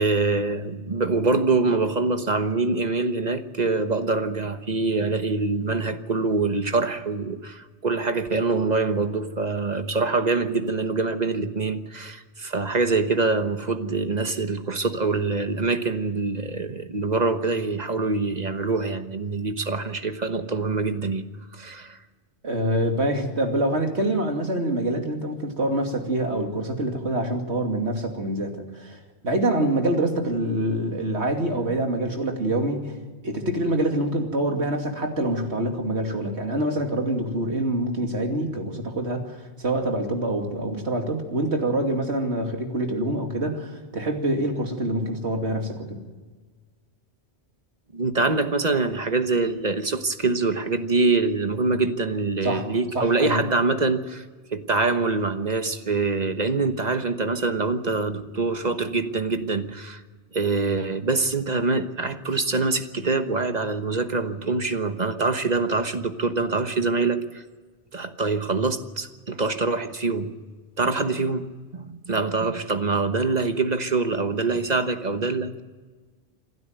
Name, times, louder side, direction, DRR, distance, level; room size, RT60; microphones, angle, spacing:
voice 1, 0.0-21.2 21.5-22.0 47.9-54.2 54.5-60.0 60.3-67.4 67.9-70.3 70.8-71.5 71.7-75.6, right 3 dB, 40° right, 8 dB, 1.3 m, -24 dB
voice 2, 22.4-32.9 33.2-46.0 52.4-52.7 52.9-53.4, right 1 dB, 75° right, 3 dB, 2.9 m, -26 dB
27.0 x 12.5 x 9.2 m, 1.4 s
omnidirectional pair, 1.1 m